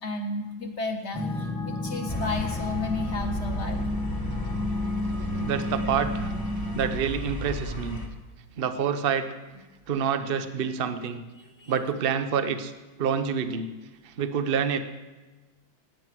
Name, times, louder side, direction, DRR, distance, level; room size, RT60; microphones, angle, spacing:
voice 1, 0.0-3.8 11.4-11.7, left 3 dB, 35° left, 4 dB, 1.6 m, -33 dB
sound 1, 1.1-7.0, left 1 dB, 5° left, 0.5 m, -32 dB
sound 2, 2.1-8.1, left 1 dB, 20° left, 1.5 m, -34 dB
voice 2, 5.4-6.3 6.7-8.0 8.6-9.3 9.9-11.2 11.7-12.7 13.0-13.7 14.0-14.8, right 7 dB, 85° right, 9 dB, 0.5 m, -27 dB
16.5 x 9.4 x 6.1 m, 1.2 s
omnidirectional pair, 2.2 m